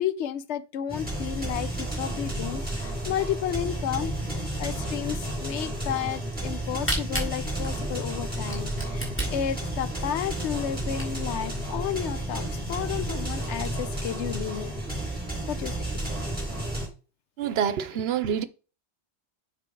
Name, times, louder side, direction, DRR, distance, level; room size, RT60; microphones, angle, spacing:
voice 1, 0.0-14.7 15.5-15.8, left 10 dB, 85° left, 0.9 m, -32 dB
sound 1, 0.9-16.9, right 1 dB, 10° right, 3.3 m, -32 dB
Camera, 6.5-11.4 12.0-12.1 12.3-12.4 12.8-12.9 13.3-13.7, right 1 dB, 10° left, 2.0 m, -33 dB
voice 2, 17.4-18.4, right 8 dB, 70° right, 0.8 m, -26 dB
6.9 x 4.0 x 4.5 m
omnidirectional pair, 1.1 m